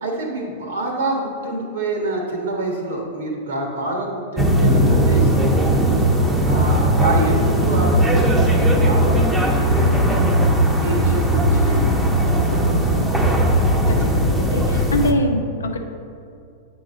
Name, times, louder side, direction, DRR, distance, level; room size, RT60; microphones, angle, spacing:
voice 1, 0.0-5.6 6.4-10.1 10.8-11.9 12.3-12.8, right 2 dB, 75° right, 1 dB, 1.5 m, -27 dB
sound 1, 4.4-15.1, equal, 10° right, 0.8 m, -17 dB
voice 2, 13.9-15.8, left 1 dB, 85° left, 5 dB, 0.7 m, -24 dB
7.7 x 3.9 x 5.1 m, 2.4 s
hypercardioid pair, 105°, 0 cm